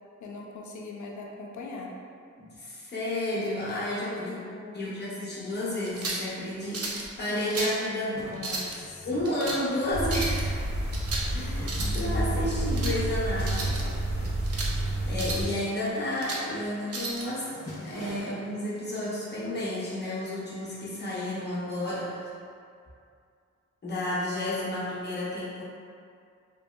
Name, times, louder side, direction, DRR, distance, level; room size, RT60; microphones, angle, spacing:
voice 1, 0.2-1.9 4.2-4.9 7.3-7.6 7.9-9.1 11.8-12.5, left 3 dB, 75° left, -1 dB, 0.4 m, -41 dB
voice 2, 2.4-8.7 9.0-10.7 11.3-13.8 15.0-17.5 17.8-22.3 23.8-25.6, left 1 dB, 35° left, -8 dB, 0.7 m, -31 dB
sound 1, 5.7-5.8 6.0-6.8 7.4-15.7 16.0-16.3 16.6-16.9 17.2-18.2, left 1 dB, 35° right, 1.1 m, -45 dB
sound 2, 5.8-6.3 6.7-7.1 7.4-7.8 8.3-8.8 9.2-9.6 10.0-10.4 10.9-11.3 11.6-12.0 12.5-13.0 13.4-13.8 14.2-14.7 15.1-15.5 15.9-16.4 16.9-17.3, right 3 dB, 55° right, 0.4 m, -34 dB
sound 3, 9.9-15.5, right 1 dB, 80° right, 1.4 m, -29 dB
2.8 x 2.7 x 2.3 m, 2.3 s
wide cardioid pair, 175°, 30 cm